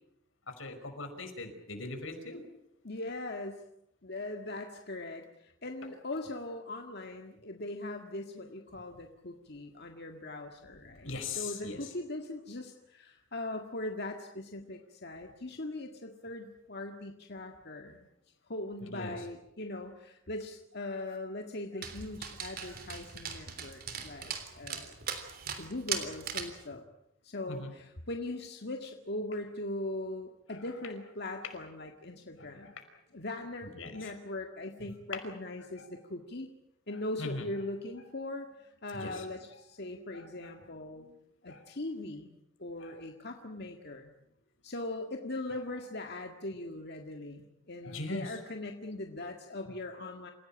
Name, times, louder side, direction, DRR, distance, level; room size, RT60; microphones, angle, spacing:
voice 1, 0.5-2.4 11.0-11.8 18.8-19.1 22.7-22.8 27.5-27.7 32.4-32.7 33.6-34.1 35.8-35.9 37.2-37.5 38.9-39.3 40.1-40.5 41.5-41.6 42.8-43.0 47.8-48.3, left 3 dB, 85° left, 6 dB, 5.4 m, -40 dB
voice 2, 2.8-3.6 4.0-18.1 18.5-25.0 25.6-26.8 27.2-32.7 33.1-36.5 36.9-41.2 41.4-42.3 42.6-44.1 44.6-50.3, left 2 dB, 55° left, 3 dB, 1.9 m, -40 dB
Dog, 21.8-26.6, right 7 dB, 50° right, 3.4 m, -39 dB
28.5 x 16.5 x 8.9 m, 0.80 s
head